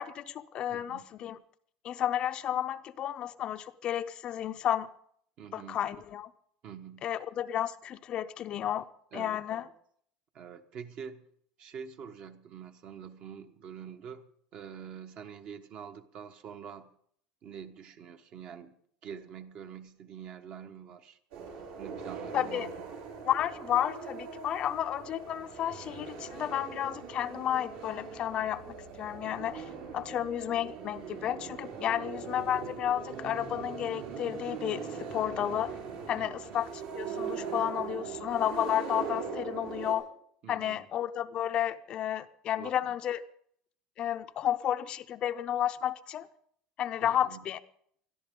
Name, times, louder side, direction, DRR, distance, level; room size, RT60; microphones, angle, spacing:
voice 1, 0.0-1.4 1.8-4.9 5.5-6.3 7.0-8.9 9.1-9.6 22.3-22.7 23.2-28.6 29.0-35.7 36.1-40.0 40.5-43.2 44.0-46.3 46.8-47.6, left 11 dB, 35° left, 10 dB, 0.6 m, -32 dB
voice 2, 0.7-1.1 5.4-5.8 6.6-7.1 9.1-9.7 10.3-11.3 11.6-16.9 17.4-18.7 19.0-21.2 21.8-22.7 31.9-32.1 36.2-36.6 40.4-40.9 42.6-43.0 47.0-47.4, right 7 dB, 40° right, 8 dB, 1.2 m, -46 dB
sound 1, 21.3-40.0, right 6 dB, 70° right, 5.6 m, -41 dB
21.0 x 13.5 x 3.7 m, 0.65 s
cardioid pair, 155°, 3 cm